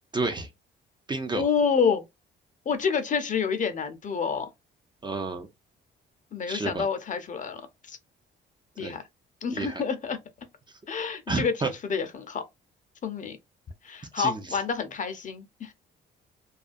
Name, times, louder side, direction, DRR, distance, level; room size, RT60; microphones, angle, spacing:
voice 1, 0.1-0.5 1.1-1.5 5.0-5.5 6.5-6.9 8.8-9.0 9.5-9.8 11.3-11.7 14.2-14.6, right 3 dB, 25° right, 0.4 m, -30 dB
voice 2, 1.3-2.0 2.7-4.5 6.3-7.6 7.9-8.0 8.8-9.0 9.4-10.2 10.9-11.5 11.8-12.4 13.0-13.4 13.8-15.7, left 6 dB, 40° left, 0.6 m, -28 dB
2.4 x 2.2 x 2.4 m
cardioid pair, 90°, 20 cm